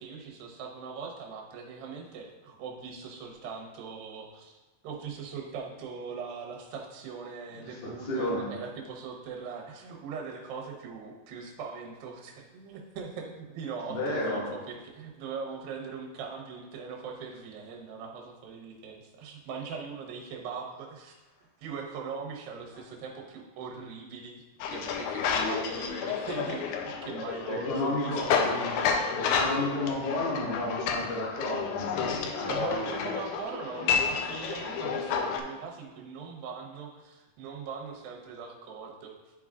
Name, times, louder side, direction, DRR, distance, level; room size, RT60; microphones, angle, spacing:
voice 1, 0.0-4.6 4.8-21.2 21.6-24.4 24.7-29.2 32.5-39.1, right 5 dB, 80° right, 1 dB, 2.6 m, -40 dB
voice 2, 7.8-8.5 13.9-14.5 27.5-28.5 29.2-32.5, left 1 dB, 55° left, -5 dB, 1.9 m, -31 dB
sound 1, 24.6-35.4, left 6 dB, 85° left, 1.8 m, -30 dB
11.0 x 4.6 x 2.4 m, 1.1 s
omnidirectional pair, 4.2 m